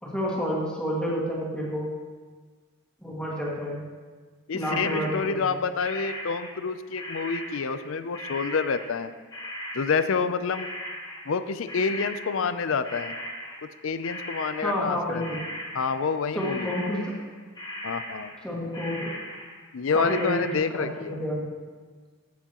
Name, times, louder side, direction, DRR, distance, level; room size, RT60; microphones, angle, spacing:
voice 1, 0.0-1.9 3.0-3.8 4.5-5.4 14.6-15.5 16.3-17.1 18.4-19.1 19.9-20.4 20.7-21.5, equal, 5° left, -6 dB, 2.0 m, -29 dB
voice 2, 4.5-9.1 9.7-10.7 11.3-13.1 13.8-15.4 15.7-16.8 17.8-18.3 19.7-21.2, left 5 dB, 65° left, 12 dB, 0.5 m, -28 dB
sound 1, 4.6-6.7 7.0-13.8 14.0-17.3 17.6-18.5 18.7-20.5, equal, 20° left, 1.7 m, -38 dB
14.5 x 7.0 x 3.0 m, 1.4 s
head